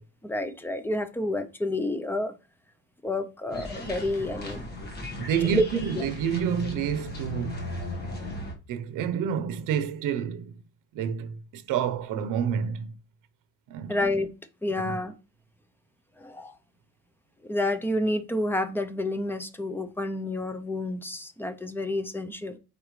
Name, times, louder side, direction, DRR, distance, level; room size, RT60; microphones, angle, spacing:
voice 1, 0.2-2.3 3.0-4.7 5.5-5.6 6.0-6.1 13.9-14.3 14.6-15.1 16.2-16.5 17.4-22.6, left 1 dB, 5° left, 0.6 m, -29 dB
sound 1, 3.5-8.5, left 1 dB, 30° left, 1.6 m, -36 dB
voice 2, 5.0-7.7 8.7-10.5 10.9-13.0 13.7-14.0 14.8-15.0, right 8 dB, 75° right, 0.9 m, -29 dB
8.6 x 5.0 x 3.2 m
cardioid pair, 170°, 32 cm